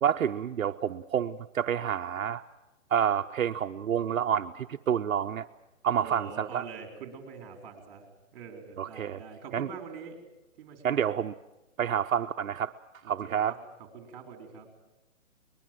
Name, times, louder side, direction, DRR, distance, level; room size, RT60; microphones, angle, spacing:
voice 1, 0.0-2.4 2.9-5.5 5.8-6.6 8.8-9.2 9.5-9.7 10.8-11.3 11.8-12.7 13.1-13.5, right 9 dB, 75° right, 6 dB, 0.8 m, -28 dB
voice 2, 5.9-8.0 8.3-10.2 10.6-11.1 13.0-14.7, right 5 dB, 30° right, 4 dB, 4.2 m, -44 dB
22.5 x 21.0 x 7.7 m, 0.97 s
hypercardioid pair, 165°, 40 cm